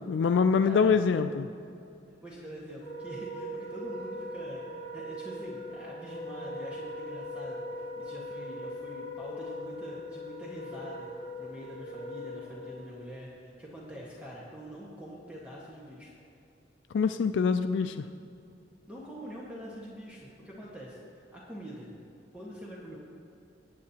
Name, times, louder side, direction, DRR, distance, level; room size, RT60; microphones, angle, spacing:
voice 1, 0.0-1.5 16.9-18.1, left 5 dB, 80° left, 9 dB, 0.4 m, -25 dB
voice 2, 0.6-1.0 2.2-11.1 11.4-16.1 18.9-21.9 22.3-23.0, equal, 5° right, -6 dB, 1.4 m, -44 dB
Wind instrument woodwind instrument, 2.8-12.8, left 1 dB, 25° left, 2.8 m, -40 dB
20.5 x 8.7 x 2.9 m, 2.7 s
head